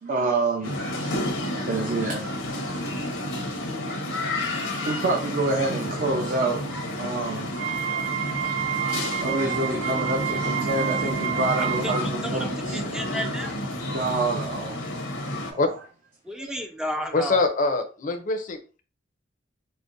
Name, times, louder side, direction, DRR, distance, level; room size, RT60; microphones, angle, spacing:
voice 1, 0.0-2.4 4.8-6.6 6.9-7.6 9.2-12.8 13.9-14.8 15.5-15.6 16.4-16.5, right 2 dB, 50° right, -1 dB, 0.7 m, -27 dB
sound 1, 0.6-15.5, left 1 dB, 75° left, 0.8 m, -30 dB
Wind instrument woodwind instrument, 7.5-12.0, right 11 dB, 85° right, 0.4 m, -29 dB
voice 2, 11.6-11.9 12.2-12.5 12.7-13.7 16.2-17.4, equal, 5° right, 4 dB, 0.4 m, -32 dB
voice 3, 17.1-18.6, left 3 dB, 45° left, 6 dB, 0.6 m, -23 dB
5.0 x 2.1 x 2.6 m, 0.36 s
head